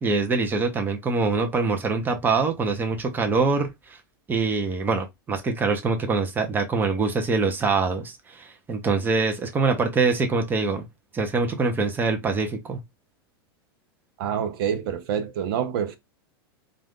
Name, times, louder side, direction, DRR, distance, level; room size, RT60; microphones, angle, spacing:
voice 1, 0.0-4.0 4.3-10.9 11.1-12.8, right 4 dB, 15° right, 0.7 m, -24 dB
voice 2, 14.2-16.0, right 8 dB, 65° right, 0.7 m, -27 dB
2.5 x 2.3 x 3.5 m
hypercardioid pair, 125°, 13 cm